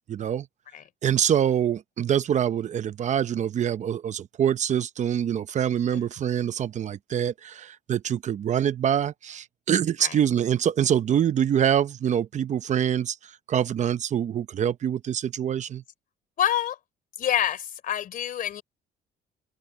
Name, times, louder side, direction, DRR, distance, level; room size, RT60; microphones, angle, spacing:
voice 1, 0.1-0.5 1.0-13.2 13.5-15.8, right 9 dB, 45° right, 0.8 m, -25 dB
voice 2, 16.4-16.8 17.2-18.6, left 10 dB, 55° left, 3.6 m, -26 dB
cardioid pair, 110°, 17 cm